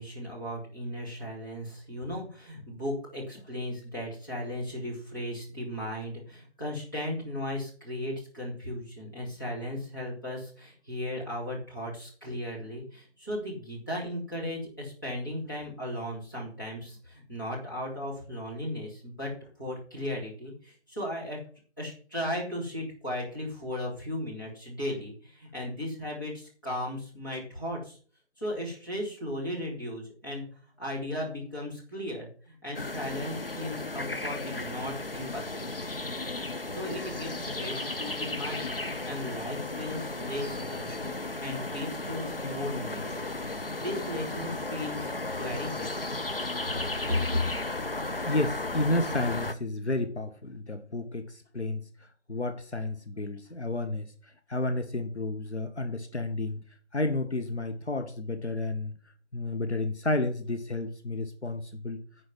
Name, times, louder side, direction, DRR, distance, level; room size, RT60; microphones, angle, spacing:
voice 1, 0.0-19.3 19.6-21.4 21.8-28.0 28.4-30.4 30.8-35.7 36.7-43.4 43.7-46.0 47.1-47.4, left 1 dB, 20° left, -7 dB, 2.3 m, -36 dB
sound 1, 32.7-49.5, left 2 dB, 55° left, 0.8 m, -35 dB
voice 2, 48.2-56.6 56.9-58.9 59.3-62.0, left 2 dB, 70° left, 9 dB, 1.1 m, -31 dB
10.0 x 4.9 x 5.8 m, 0.43 s
figure-of-eight pair, 175°, 35 cm